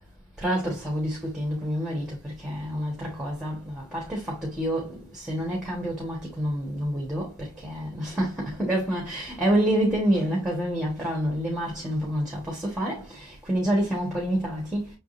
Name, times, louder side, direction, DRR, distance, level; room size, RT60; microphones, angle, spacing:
voice 1, 0.4-15.0, equal, 5° right, 1.2 m, -28 dB
5.8 x 3.6 x 2.5 m
head